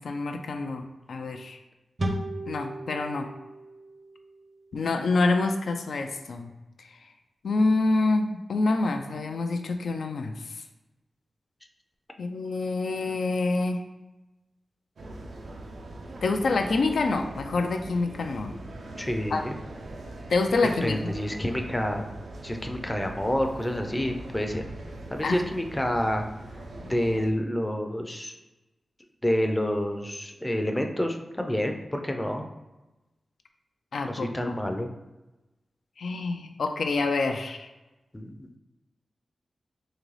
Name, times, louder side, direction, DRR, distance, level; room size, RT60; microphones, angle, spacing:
voice 1, 0.0-1.6 2.5-3.3 4.7-6.5 7.4-10.3 12.2-13.8 16.2-18.6 19.3-19.5 20.3-21.1 25.2-25.4 33.9-34.7 36.0-37.7, left 3 dB, 85° left, 5 dB, 0.3 m, -27 dB
sound 1, 2.0-5.3, right 1 dB, 40° right, 0.6 m, -36 dB
sound 2, 15.0-27.3, right 2 dB, 85° right, 0.5 m, -41 dB
voice 2, 19.0-19.5 20.8-22.1 22.4-24.7 25.1-26.2 26.8-28.3 29.2-32.5 34.1-34.9 38.1-38.5, equal, 15° left, 4 dB, 0.4 m, -28 dB
3.7 x 3.0 x 3.1 m, 1.1 s
wide cardioid pair, 95°, 0 cm